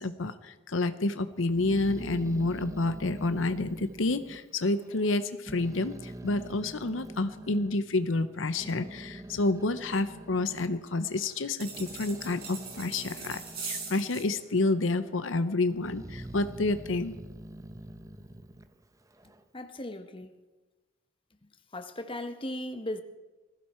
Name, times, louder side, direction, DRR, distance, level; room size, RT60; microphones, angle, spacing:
voice 1, 0.0-17.1, left 2 dB, 75° left, 0.8 m, -29 dB
Growling, 1.4-5.2 5.5-7.8 8.3-14.2 14.5-15.2 15.7-19.4, right 1 dB, 15° right, 0.8 m, -45 dB
sound 1, 11.6-14.3, right 5 dB, 55° right, 5.1 m, -41 dB
voice 2, 19.5-20.4 21.7-23.0, left 1 dB, 25° left, 1.2 m, -37 dB
21.0 x 15.5 x 4.4 m
head